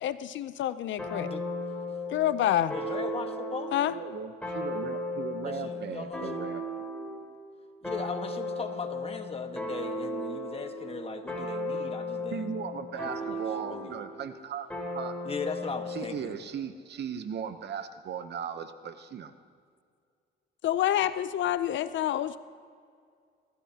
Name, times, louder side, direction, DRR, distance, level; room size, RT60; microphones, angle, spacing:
voice 1, 0.0-1.3 2.1-2.7 3.7-3.9 20.6-22.4, left 12 dB, 70° left, 13 dB, 0.5 m, -27 dB
sound 1, 1.0-7.2 7.8-14.1 14.7-16.2, left 1 dB, 5° left, 4.1 m, -36 dB
voice 2, 2.7-3.7 5.4-6.5 7.8-12.5 12.9-13.9 15.2-16.3, left 4 dB, 30° left, 5 dB, 1.4 m, -39 dB
voice 3, 3.9-6.6 12.3-14.7 14.9-15.1 15.9-19.3, right 7 dB, 60° right, 10 dB, 0.9 m, -37 dB
27.0 x 14.0 x 2.9 m, 2.2 s
cardioid pair, 90°, 20 cm